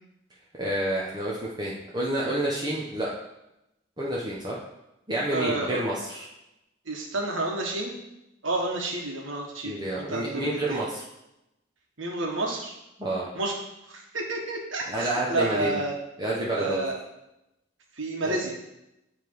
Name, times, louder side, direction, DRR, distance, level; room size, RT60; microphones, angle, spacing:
voice 1, 0.6-3.1 4.0-4.6 5.1-6.3 9.6-11.0 13.0-13.3 14.9-15.8 16.2-16.8 18.3-18.4, right 1 dB, 20° right, -5 dB, 1.0 m, -29 dB
voice 2, 5.3-5.8 6.8-8.0 8.4-10.8 12.0-12.8 13.3-13.5 13.9-15.9 16.5-17.0 18.0-18.5, right 2 dB, 85° right, 0 dB, 1.5 m, -30 dB
9.9 x 3.5 x 4.7 m, 0.88 s
head